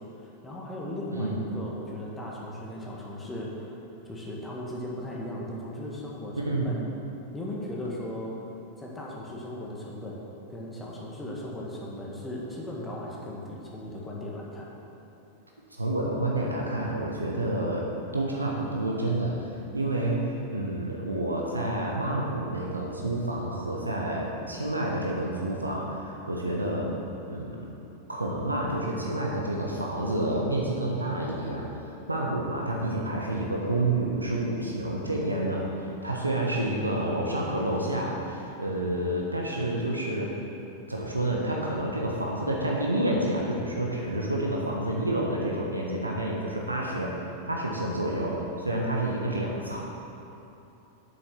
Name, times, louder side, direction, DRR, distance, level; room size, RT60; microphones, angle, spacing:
voice 1, 0.2-3.7 4.0-6.8 7.3-8.4 8.8-10.2 10.5-14.7, left 1 dB, 10° left, -4 dB, 1.7 m, -37 dB
voice 2, 1.1-1.5 6.5-6.8 15.7-17.9 18.1-26.9 27.3-27.6 28.1-31.7 32.1-35.8 36.0-40.3 40.9-47.2 47.5-49.8, right 1 dB, 80° right, -2 dB, 1.1 m, -29 dB
8.4 x 7.0 x 6.0 m, 2.9 s
figure-of-eight pair, 90°, 0 cm